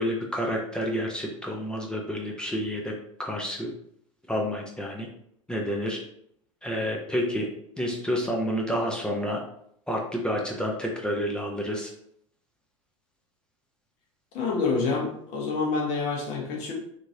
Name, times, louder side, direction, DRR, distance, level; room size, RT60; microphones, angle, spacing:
voice 1, 0.0-2.9 3.2-3.7 4.3-5.1 5.5-6.0 6.6-7.5 7.8-9.4 9.9-11.9, equal, 5° left, -1 dB, 0.5 m, -29 dB
voice 2, 14.3-16.7, left 4 dB, 45° left, 0 dB, 1.0 m, -27 dB
2.9 x 2.6 x 2.7 m, 0.70 s
figure-of-eight pair, 85°, 17 cm